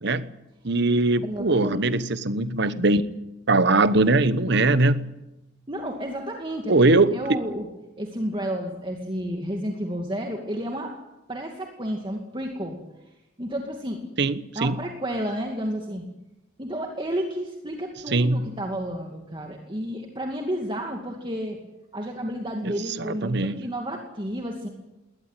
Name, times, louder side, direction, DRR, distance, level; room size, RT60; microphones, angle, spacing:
voice 1, 0.6-3.0 3.5-5.1 6.7-7.2 14.2-14.8 18.1-18.5 22.6-22.7 23.0-23.6, right 2 dB, 60° right, 14 dB, 1.1 m, -21 dB
voice 2, 1.2-1.8 5.7-6.9 7.1-7.7 8.0-11.0 11.3-12.8 13.4-14.0 14.5-16.0 16.6-21.6 21.9-24.7, equal, 25° right, 2 dB, 2.3 m, -31 dB
21.5 x 19.0 x 9.1 m, 0.98 s
head